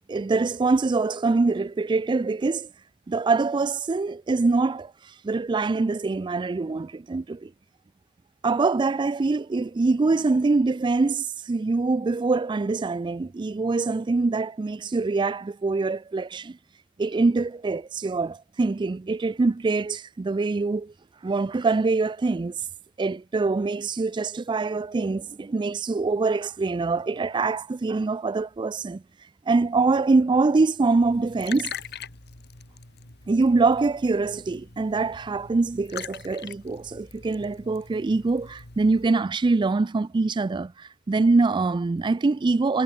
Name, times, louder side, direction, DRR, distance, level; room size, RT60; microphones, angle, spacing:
voice 1, 0.0-2.7 3.1-7.5 8.4-16.6 17.0-20.9 21.2-22.6 23.0-29.0 29.5-31.7 33.3-42.8, right 3 dB, 20° right, 0.3 m, -24 dB
Liquid, 31.0-39.1, left 7 dB, 50° left, 3.2 m, -42 dB
head